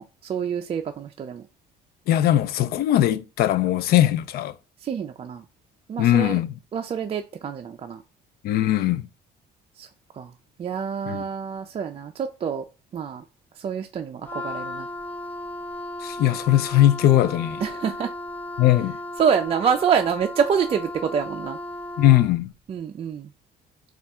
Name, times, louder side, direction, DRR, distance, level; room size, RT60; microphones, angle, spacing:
voice 1, 0.0-1.4 4.8-5.4 5.9-6.3 6.7-8.0 9.8-9.9 10.1-10.3 10.6-12.7 12.9-13.2 13.6-14.9 17.6-18.1 19.2-21.6 22.7-23.3, right 7 dB, 35° right, 0.4 m, -26 dB
voice 2, 2.1-4.6 6.0-6.5 8.4-9.1 11.1-11.3 16.0-17.6 18.6-19.0 22.0-22.5, left 13 dB, 65° left, 0.4 m, -20 dB
Wind instrument woodwind instrument, 14.2-22.4, left 1 dB, 10° left, 0.8 m, -35 dB
4.1 x 2.4 x 3.4 m
cardioid pair, 110°, 17 cm